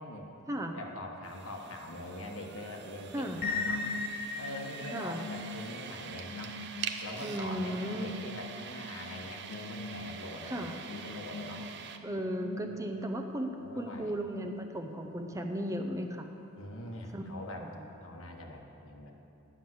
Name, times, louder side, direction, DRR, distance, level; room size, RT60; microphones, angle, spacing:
voice 1, 0.6-3.9 4.3-6.6 7.0-11.7 12.6-12.8 13.6-14.1 16.5-17.7 18.0-19.1, left 1 dB, 75° left, 1 dB, 1.4 m, -43 dB
sound 1, 1.2-12.0, right 7 dB, 55° right, 0.6 m, -45 dB
sound 2, 3.4-15.1, left 3 dB, 45° left, 0.6 m, -41 dB
voice 2, 4.9-5.2 7.2-8.2 10.4-10.8 12.0-16.3 17.1-17.9, equal, 15° right, 4 dB, 0.5 m, -36 dB
10.0 x 6.9 x 7.9 m, 2.9 s
head